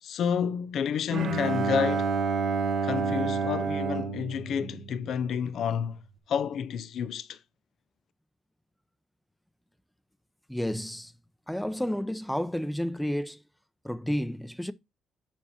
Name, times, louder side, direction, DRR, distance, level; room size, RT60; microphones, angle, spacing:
voice 1, 0.0-2.1 2.8-6.0 6.3-7.4, left 7 dB, 70° left, 0.5 m, -30 dB
Bowed string instrument, 1.1-5.5, right 5 dB, 60° right, 1.4 m, -29 dB
voice 2, 10.5-11.1 11.5-13.4 13.8-14.7, equal, 5° left, 0.7 m, -31 dB
7.3 x 5.4 x 4.2 m
cardioid pair, 90°, 0 cm